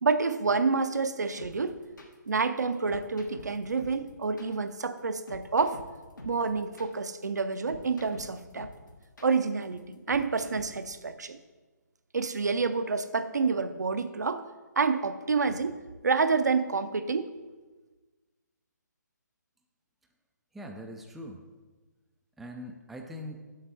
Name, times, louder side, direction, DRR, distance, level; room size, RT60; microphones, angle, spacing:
voice 1, 0.0-1.8 2.3-5.8 6.2-8.7 9.2-9.8 10.1-11.4 12.1-14.5 14.8-17.3, right 4 dB, 65° right, 11 dB, 0.6 m, -28 dB
sound 1, 1.4-10.9, left 2 dB, 80° left, 1.6 m, -47 dB
voice 2, 20.5-21.4 22.4-23.4, equal, ahead, 2 dB, 0.4 m, -42 dB
8.1 x 7.3 x 4.6 m, 1.3 s
figure-of-eight pair, 140°, 10 cm